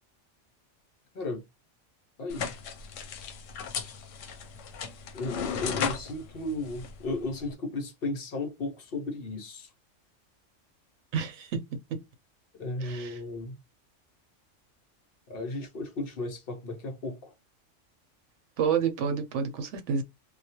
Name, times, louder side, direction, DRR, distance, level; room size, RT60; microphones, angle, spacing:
voice 1, 2.2-2.5 5.1-9.7 12.5-13.6 15.3-17.3, left 2 dB, 55° left, 0.9 m, -35 dB
sound 1, 2.3-7.5, left 7 dB, 85° left, 0.9 m, -36 dB
voice 2, 11.1-12.0 12.8-13.2 18.6-20.0, right 6 dB, 75° right, 0.9 m, -29 dB
2.3 x 2.2 x 2.8 m
omnidirectional pair, 1.3 m